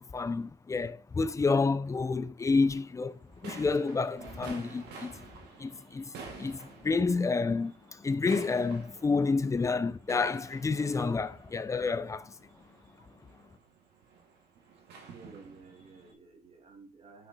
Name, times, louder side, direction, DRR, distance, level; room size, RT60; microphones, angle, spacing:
voice 1, 0.0-5.2 5.6-12.3, left 4 dB, 20° left, 0.5 m, -29 dB
sound 1, 2.5-16.1, right 5 dB, 80° right, 2.0 m, -50 dB
voice 2, 14.7-17.3, right 4 dB, 35° right, 2.1 m, -53 dB
5.8 x 5.7 x 4.1 m
cardioid pair, 110°, 17 cm